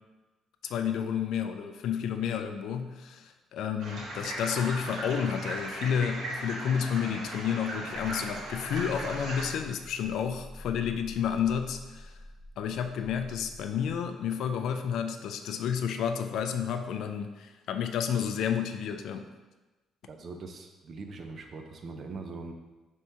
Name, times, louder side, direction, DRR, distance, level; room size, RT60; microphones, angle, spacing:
voice 1, 0.6-12.1 12.6-19.2, left 8 dB, 60° left, 7 dB, 0.3 m, -31 dB
sound 1, 3.8-9.5, right 1 dB, 65° right, 1.1 m, -37 dB
sound 2, 7.9-14.0, left 1 dB, 15° left, 0.8 m, -48 dB
voice 2, 20.1-22.5, right 3 dB, 35° right, 4 dB, 0.4 m, -41 dB
3.5 x 2.8 x 4.3 m, 1.1 s
cardioid pair, 175°, 0 cm